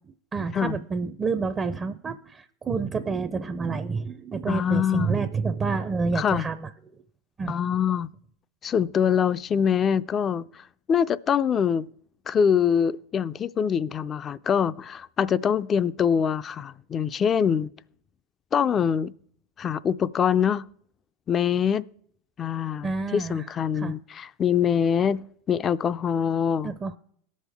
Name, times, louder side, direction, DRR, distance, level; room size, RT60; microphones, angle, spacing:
voice 1, 0.3-6.7 7.4-7.5 22.8-23.4 23.7-23.9 26.6-27.0, right 4 dB, 25° right, 0.5 m, -28 dB
voice 2, 4.5-5.2 6.1-6.5 7.5-8.1 8.6-11.9 12.3-17.7 18.5-19.1 19.6-20.6 21.3-21.9 22.4-25.2 25.5-26.7, left 7 dB, 30° left, 0.4 m, -24 dB
18.0 x 6.4 x 3.4 m
hypercardioid pair, 105°, 0 cm